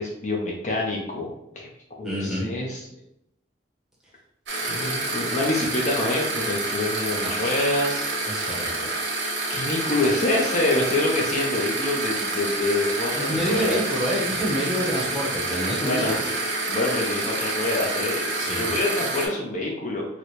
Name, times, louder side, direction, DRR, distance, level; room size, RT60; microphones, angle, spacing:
voice 1, 0.0-1.7 2.0-2.8 4.6-8.6 9.5-13.8 15.8-16.3 16.7-18.3 18.6-20.1, left 2 dB, 40° left, -1 dB, 0.5 m, -26 dB
voice 2, 2.0-2.5 7.1-7.3 8.3-8.9 13.1-16.2 18.3-18.7, equal, 5° right, -5 dB, 0.7 m, -28 dB
sound 1, 4.5-19.3, right 2 dB, 75° right, 1.0 m, -28 dB
4.0 x 2.1 x 3.0 m, 0.79 s
head